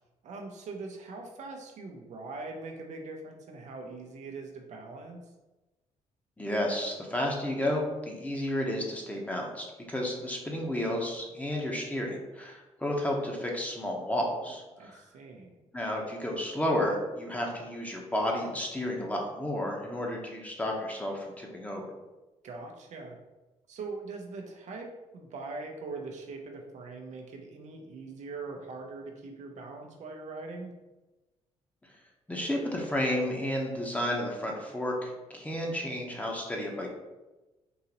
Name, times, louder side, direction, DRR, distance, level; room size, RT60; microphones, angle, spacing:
voice 1, 0.2-5.2 14.8-15.5 22.4-23.2 23.7-30.7, right 3 dB, 60° right, 2 dB, 0.6 m, -42 dB
voice 2, 6.4-15.0 15.7-21.8 32.3-36.9, left 1 dB, 10° left, -1 dB, 0.9 m, -32 dB
3.8 x 2.7 x 2.9 m, 1.1 s
supercardioid pair, 65°, 13 cm